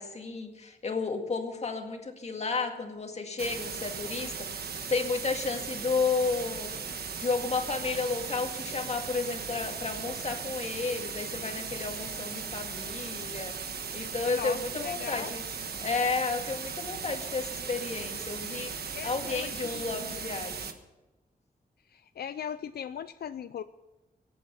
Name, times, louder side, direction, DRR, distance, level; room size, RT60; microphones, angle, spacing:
voice 1, 0.0-4.6 4.9-6.7 7.2-13.5 13.9-15.4 15.8-18.7 19.0-20.6, left 4 dB, 45° left, 4 dB, 2.0 m, -32 dB
sound 1, 3.4-20.7, right 6 dB, 85° right, 1.3 m, -37 dB
voice 2, 14.3-15.3 18.9-20.4 21.9-23.6, left 8 dB, 80° left, 12 dB, 0.5 m, -39 dB
24.0 x 8.6 x 5.6 m, 1.1 s
wide cardioid pair, 115°, 16 cm